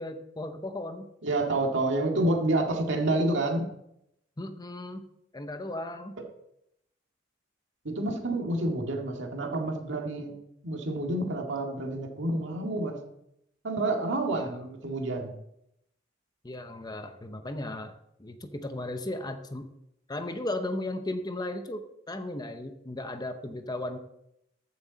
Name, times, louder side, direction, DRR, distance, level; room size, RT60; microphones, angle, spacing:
voice 1, 0.0-1.1 4.4-5.1 5.3-6.2 14.3-14.6 16.4-17.9 18.2-19.7 20.1-24.0, left 1 dB, 20° left, 8 dB, 0.8 m, -36 dB
voice 2, 1.2-3.7 7.8-10.4 10.6-13.0 13.6-15.3, right 2 dB, 70° right, 2 dB, 2.0 m, -28 dB
14.0 x 7.3 x 4.0 m, 0.80 s
head